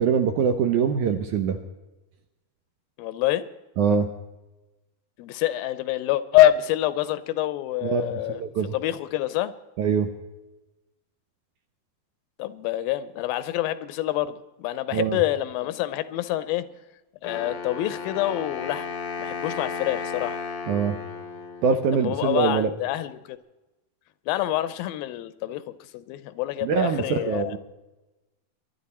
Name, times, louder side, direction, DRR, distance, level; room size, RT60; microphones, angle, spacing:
voice 1, 0.0-1.6 3.8-4.1 7.8-8.7 9.8-10.1 14.9-15.2 20.7-21.0 21.6-22.7 26.6-27.6, right 6 dB, 70° right, 7 dB, 1.9 m, -23 dB
voice 2, 3.0-3.4 5.2-8.4 8.7-9.5 12.4-16.7 17.2-18.9 19.2-20.4 21.9-23.4 24.3-27.6, left 14 dB, 80° left, 15 dB, 2.4 m, -26 dB
Wind instrument woodwind instrument, 17.2-22.2, left 5 dB, 65° left, 1.1 m, -34 dB
23.0 x 11.5 x 4.2 m, 1.1 s
omnidirectional pair, 4.4 m